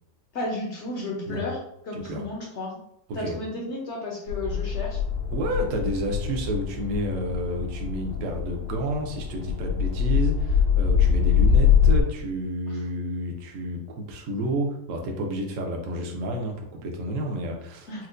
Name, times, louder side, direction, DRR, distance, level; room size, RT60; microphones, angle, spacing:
voice 1, 0.3-1.6 1.8-2.8 3.1-5.0 12.7-12.8 17.9-18.1, left 2 dB, 65° left, -2 dB, 0.7 m, -33 dB
voice 2, 1.9-2.2 3.2-3.4 5.3-18.1, right 1 dB, 65° right, 2 dB, 0.8 m, -30 dB
sound 1, 4.3-12.0, left 7 dB, 85° left, 1.4 m, -23 dB
4.4 x 2.1 x 2.5 m, 0.77 s
omnidirectional pair, 1.9 m